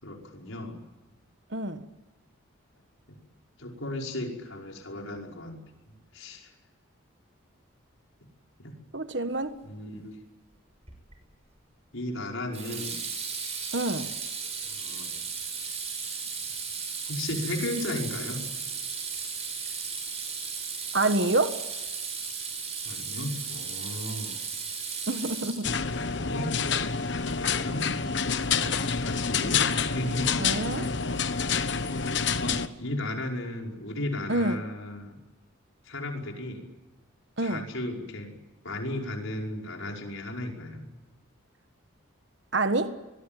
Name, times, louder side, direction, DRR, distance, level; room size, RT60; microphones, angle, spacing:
voice 1, 0.0-0.8 3.1-3.2 3.6-5.6 5.9-6.5 8.6-8.7 9.6-10.1 11.9-13.0 14.7-15.1 17.1-18.4 22.8-24.4 25.9-26.5 27.3-27.9 29.0-29.7 29.9-30.3 30.6-30.7 32.4-35.2 35.9-36.6 37.4-38.3 38.6-40.8, left 1 dB, 75° left, 1 dB, 5.6 m, -35 dB
voice 2, 1.5-1.8 8.9-9.5 13.7-14.1 20.9-21.6 25.1-25.7 30.4-30.9 34.3-34.6 37.4-37.7 42.5-42.9, right 2 dB, 55° right, 9 dB, 1.5 m, -27 dB
Water tap faucet / Sink (filling or washing), 10.9-11.2 12.5-26.0, right 5 dB, 30° right, 6.6 m, -35 dB
sound 1, 25.6-32.7, left 6 dB, 55° left, 1.2 m, -28 dB
24.0 x 22.0 x 9.1 m, 1.1 s
head